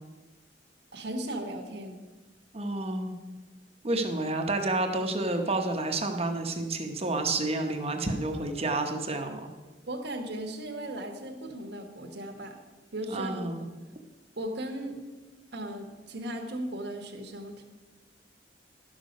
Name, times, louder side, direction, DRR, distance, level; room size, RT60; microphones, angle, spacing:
voice 1, 0.9-2.0 9.9-12.6 12.9-13.7 14.4-15.0 15.5-17.6, right 1 dB, 65° right, 4 dB, 1.3 m, -37 dB
voice 2, 2.5-3.1 3.8-9.5 13.1-13.6, right 2 dB, 35° right, 4 dB, 0.9 m, -30 dB
11.0 x 6.5 x 5.2 m, 1.3 s
head